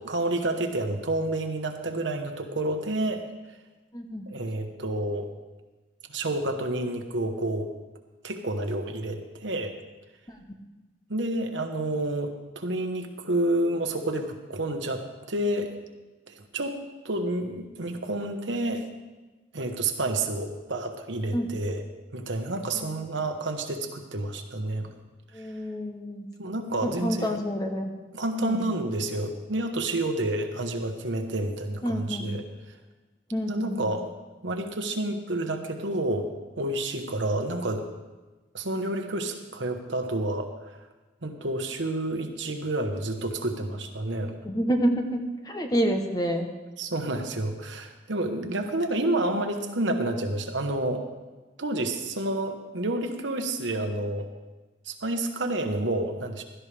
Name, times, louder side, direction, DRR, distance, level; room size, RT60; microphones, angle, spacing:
voice 1, 0.0-3.2 4.3-5.3 6.1-7.7 8.2-9.7 11.1-15.7 16.3-18.8 19.5-21.8 22.1-24.9 26.4-27.4 28.1-32.4 33.5-34.0 34.4-36.3 36.6-37.8 38.5-40.7 41.2-44.3 46.8-51.1 51.6-54.3 54.8-56.4, right 1 dB, 75° right, 5 dB, 1.2 m, -29 dB
voice 2, 3.9-4.3 10.3-10.4 21.3-21.5 22.7-23.0 25.3-26.3 26.8-27.9 28.4-28.8 31.8-32.3 33.3-33.8 44.4-46.5, equal, 20° left, 4 dB, 1.0 m, -28 dB
16.0 x 12.5 x 3.4 m, 1.2 s
head